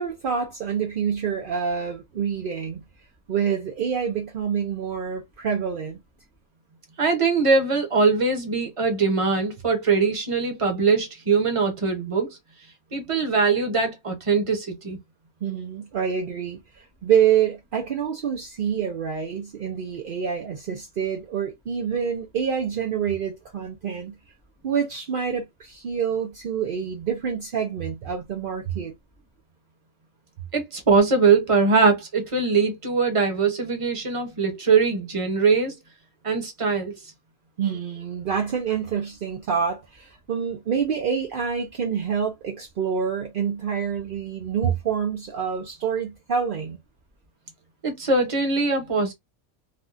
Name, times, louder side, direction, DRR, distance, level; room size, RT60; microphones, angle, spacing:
voice 1, 0.0-2.8 3.3-6.0 15.4-24.1 24.6-28.9 37.6-46.8, right 7 dB, 60° right, 0.5 m, -27 dB
voice 2, 7.0-12.4 12.9-15.0 30.5-35.7 36.2-37.1 47.8-49.1, right 4 dB, 30° right, 0.8 m, -22 dB
3.4 x 2.3 x 2.5 m
omnidirectional pair, 1.5 m